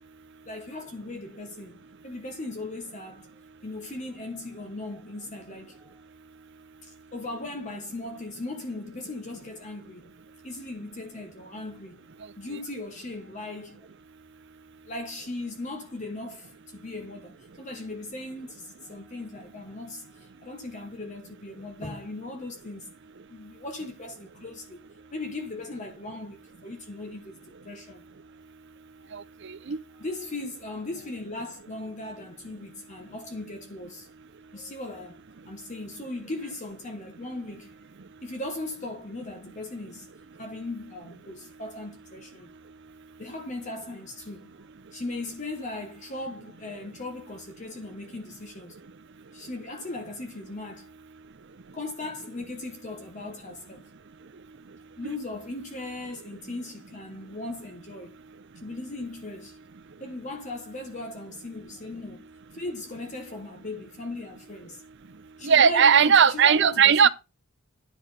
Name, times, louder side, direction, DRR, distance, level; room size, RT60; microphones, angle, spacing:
voice 1, 0.5-3.3 3.6-6.0 6.8-10.1 10.4-12.0 12.4-13.9 14.9-22.9 23.3-28.0 29.0-29.1 29.9-34.1 34.5-35.2 35.4-37.7 38.2-40.1 40.4-42.5 43.2-48.8 49.3-50.9 51.7-53.9 55.0-58.2 58.6-59.6 60.0-64.8 65.4-67.1, left 2 dB, 35° left, 1.1 m, -38 dB
voice 2, 29.1-29.8 65.4-67.1, right 7 dB, 55° right, 0.6 m, -18 dB
10.5 x 6.1 x 4.0 m
head